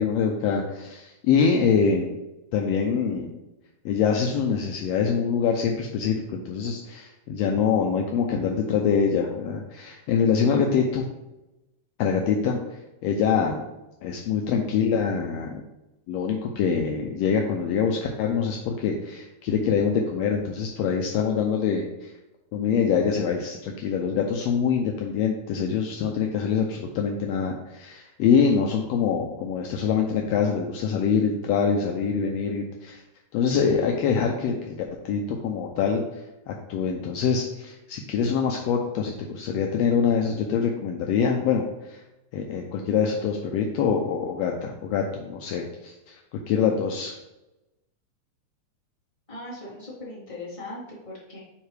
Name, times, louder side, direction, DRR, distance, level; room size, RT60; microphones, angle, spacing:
voice 1, 0.0-2.2 2.5-3.3 3.8-11.1 12.0-13.6 14.0-15.6 16.1-22.1 22.5-33.0 33.3-34.8 35.0-36.2 36.5-42.0 42.3-47.1, left 6 dB, 85° left, 2 dB, 1.5 m, -25 dB
voice 2, 49.3-51.4, left 2 dB, 10° left, -8 dB, 2.0 m, -39 dB
9.0 x 3.7 x 3.2 m, 0.97 s
omnidirectional pair, 3.5 m